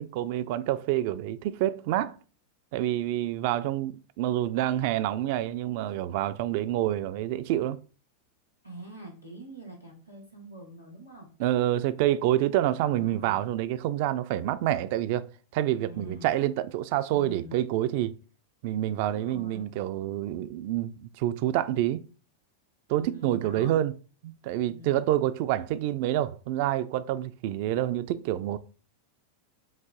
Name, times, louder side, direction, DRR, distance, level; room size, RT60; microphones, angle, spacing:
voice 1, 0.0-2.1 2.7-7.8 11.4-15.3 15.5-18.1 18.6-22.0 22.9-23.9 24.2-28.6, right 13 dB, 45° right, 0.3 m, -27 dB
voice 2, 8.6-11.3 12.8-13.4 15.8-16.4 17.1-17.6 19.1-19.7 23.0-23.8 24.7-25.3, right 2 dB, 90° left, 1.6 m, -44 dB
5.5 x 2.5 x 3.7 m
figure-of-eight pair, 90°, 0 cm